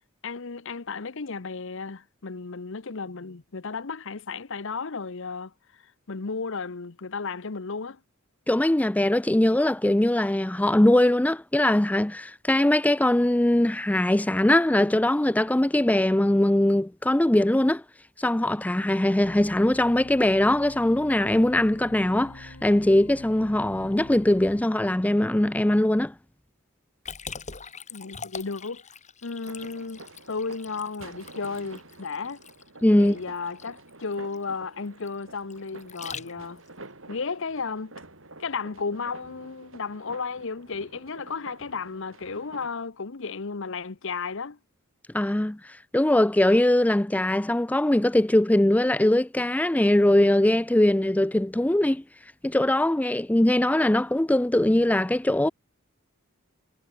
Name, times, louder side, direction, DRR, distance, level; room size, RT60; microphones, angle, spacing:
voice 1, 0.2-5.8 6.1-8.0 27.9-28.8 29.2-30.0 30.3-32.4 32.9-36.6 37.1-37.9 38.4-44.6, left 4 dB, 65° left, 0.9 m, -34 dB
voice 2, 8.5-17.8 18.2-26.1 32.8-33.2 45.1-45.6 45.9-52.0 52.4-55.5, left 1 dB, 5° left, 0.4 m, -21 dB
sound 1, 19.2-24.6, left 1 dB, 85° left, 2.3 m, -46 dB
Liquid, 27.1-36.7, left 6 dB, 35° left, 4.5 m, -43 dB
sound 2, 29.4-42.7, right 2 dB, 70° right, 7.2 m, -48 dB
head